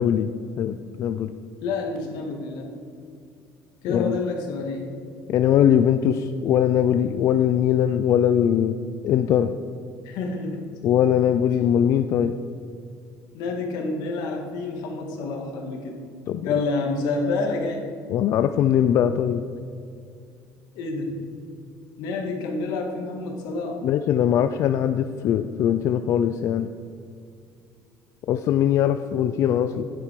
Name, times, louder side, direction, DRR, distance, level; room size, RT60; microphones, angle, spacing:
voice 1, 0.0-1.3 3.9-4.2 5.3-8.8 9.0-9.5 10.8-12.3 16.3-16.5 18.1-19.4 23.8-26.7 28.3-29.8, left 9 dB, 50° left, 9 dB, 0.3 m, -21 dB
voice 2, 1.6-2.7 3.8-4.9 10.0-10.6 13.3-16.0 16.4-17.9 20.7-21.2 22.0-23.8, left 3 dB, 75° left, 2 dB, 1.8 m, -28 dB
9.5 x 8.2 x 4.6 m, 2.4 s
cardioid pair, 155°, 7 cm